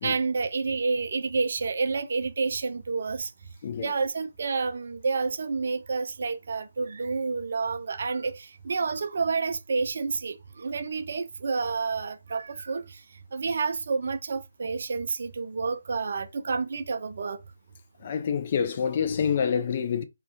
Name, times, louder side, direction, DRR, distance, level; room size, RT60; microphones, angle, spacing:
voice 1, 0.0-3.3 3.8-12.9 13.3-17.4, right 4 dB, 50° right, 0.3 m, -29 dB
voice 2, 18.0-20.0, left 7 dB, 40° left, 0.3 m, -27 dB
2.3 x 2.2 x 2.5 m
figure-of-eight pair, 145°, 0 cm